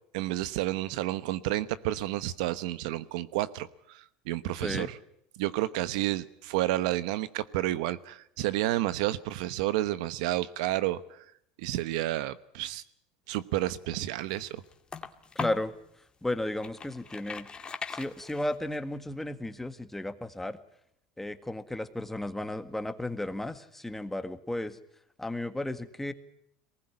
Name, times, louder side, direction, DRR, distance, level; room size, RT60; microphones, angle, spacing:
voice 1, 0.1-5.0 5.4-11.2 11.6-12.8 13.3-14.6, right 15 dB, 75° right, 15 dB, 1.0 m, -30 dB
voice 2, 4.6-4.9 15.4-15.7 16.2-17.5 17.9-20.6 21.2-24.8 25.2-26.1, left 1 dB, 5° left, 9 dB, 1.8 m, -34 dB
sound 1, 13.6-15.7 16.3-18.8, left 5 dB, 25° left, 2.1 m, -40 dB
23.0 x 19.5 x 9.9 m, 0.75 s
supercardioid pair, 95°, 4 cm